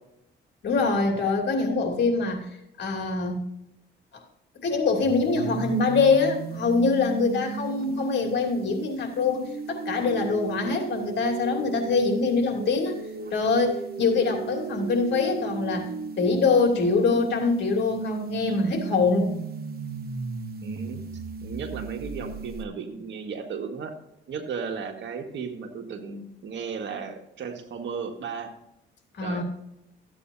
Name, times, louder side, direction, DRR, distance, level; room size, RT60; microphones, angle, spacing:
voice 1, 0.6-2.5 2.8-3.5 4.1-4.2 4.6-13.0 13.3-15.9 16.2-19.3 29.2-29.4, left 4 dB, 60° left, 2 dB, 2.8 m, -24 dB
sound 1, 5.0-22.6, right 5 dB, 50° right, 1.1 m, -36 dB
voice 2, 20.6-23.9 24.3-28.5 29.2-29.4, right 5 dB, 65° right, 4 dB, 1.9 m, -35 dB
14.5 x 8.6 x 2.8 m, 0.84 s
cardioid pair, 90°, 20 cm